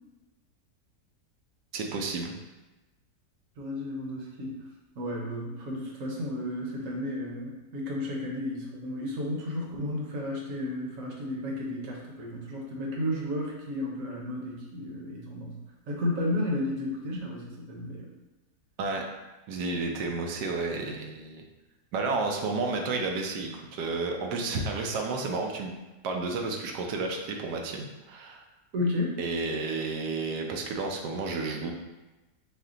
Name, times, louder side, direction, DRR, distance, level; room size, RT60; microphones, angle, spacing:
voice 1, 1.7-2.3 18.8-19.0 19.5-21.4 21.9-25.8 26.0-28.4 29.2-31.7, right 3 dB, 90° right, 2 dB, 1.3 m, -31 dB
voice 2, 3.6-4.5 5.0-15.6 15.9-18.1 28.7-29.2, left 1 dB, 55° right, -1 dB, 1.2 m, -33 dB
5.6 x 2.2 x 3.7 m, 1.1 s
omnidirectional pair, 1.7 m